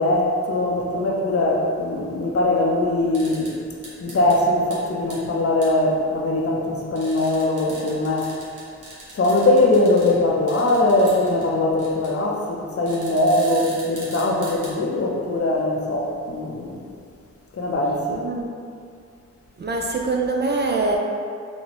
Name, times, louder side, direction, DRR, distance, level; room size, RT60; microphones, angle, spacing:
voice 1, 0.0-3.6 4.0-8.3 9.2-16.8 17.5-18.2, left 2 dB, 50° left, -1 dB, 0.6 m, -21 dB
sound 1, 3.1-3.5 3.8-4.4 4.7-4.8 5.1-5.2 5.6-5.7 7.0-10.1 10.5-11.5 11.8-12.1 12.9-14.7, right 2 dB, 80° right, 0.9 m, -40 dB
voice 2, 18.1-18.5 19.6-21.0, right 3 dB, 35° right, 0 dB, 0.4 m, -24 dB
4.2 x 2.1 x 2.9 m, 2.3 s
cardioid pair, 55°, 30 cm